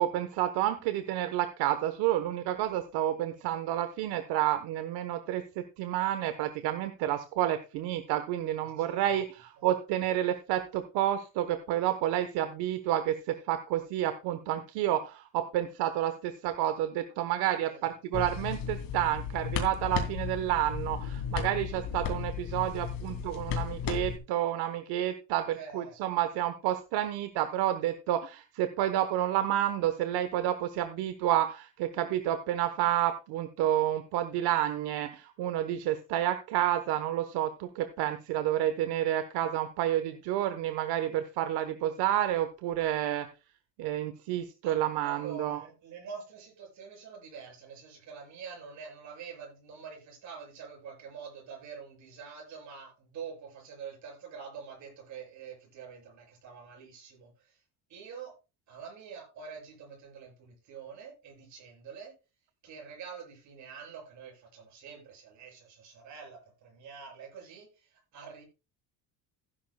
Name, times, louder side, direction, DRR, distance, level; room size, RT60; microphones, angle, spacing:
voice 1, 0.0-43.3 43.8-45.6, right 12 dB, 75° right, 10 dB, 1.1 m, -30 dB
voice 2, 8.6-9.2 17.7-17.9 25.5-25.9 44.6-44.8 45.0-57.6 57.9-58.3 58.7-62.1 62.6-68.4, right 6 dB, 45° right, 0 dB, 7.3 m, -46 dB
sound 1, 18.1-24.2, left 7 dB, 60° left, 2.8 m, -35 dB
16.0 x 10.5 x 2.3 m, 0.30 s
cardioid pair, 175°, 39 cm